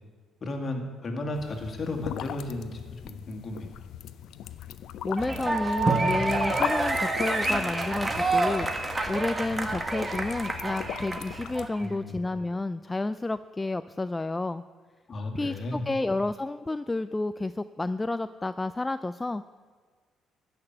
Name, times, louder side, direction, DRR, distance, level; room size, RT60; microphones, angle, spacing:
voice 1, 0.4-3.7 11.8-12.2 15.1-15.9, left 2 dB, 40° left, 3 dB, 2.2 m, -34 dB
sound 1, 1.3-11.7, left 10 dB, 75° left, 0.5 m, -39 dB
voice 2, 5.0-14.6 15.3-19.5, left 2 dB, 15° left, 12 dB, 0.3 m, -30 dB
sound 2, 5.2-11.8, right 2 dB, 20° right, 1.5 m, -28 dB
13.5 x 6.1 x 8.8 m, 1.5 s
cardioid pair, 85°, 0 cm